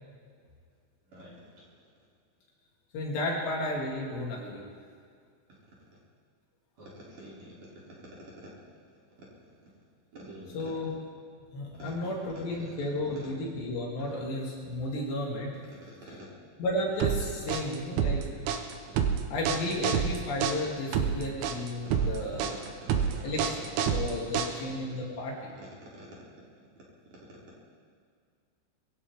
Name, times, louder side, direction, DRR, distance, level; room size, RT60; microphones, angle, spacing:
voice 1, 2.9-4.6 10.5-10.9 11.5-15.5 16.1-16.2 16.6-18.2 19.3-22.5 23.2-25.5, left 1 dB, 60° left, -3 dB, 4.4 m, -33 dB
voice 2, 6.8-7.6 10.1-10.6 11.8-11.9 16.2-16.3 26.0-26.1, right 1 dB, 45° right, -6 dB, 4.2 m, -47 dB
sound 1, 17.0-24.9, right 7 dB, 75° right, 3.3 m, -28 dB
23.5 x 16.0 x 3.6 m, 2.1 s
omnidirectional pair, 5.8 m